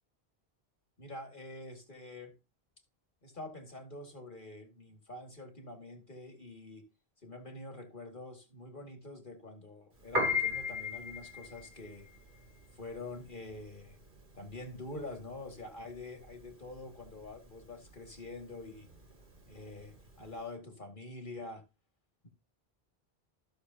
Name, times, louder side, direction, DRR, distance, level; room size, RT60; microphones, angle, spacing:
voice 1, 1.0-2.3 3.2-6.9 7.2-12.1 12.7-14.0 14.4-18.9 19.5-21.6, left 2 dB, 55° left, 2.5 m, -46 dB
Piano, 10.0-20.4, left 3 dB, 55° right, 3.2 m, -37 dB
15.0 x 6.7 x 2.9 m
omnidirectional pair, 1.0 m